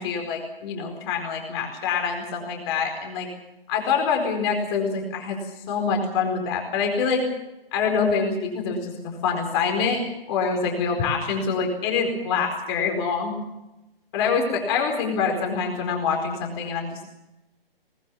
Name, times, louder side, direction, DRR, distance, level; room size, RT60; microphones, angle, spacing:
voice 1, 0.0-3.3 3.7-5.4 5.7-7.3 7.7-8.9 9.2-10.0 10.3-13.3 14.1-17.0, left 5 dB, 25° left, 2 dB, 4.5 m, -25 dB
21.0 x 20.0 x 7.1 m, 0.95 s
figure-of-eight pair, 140°, 29 cm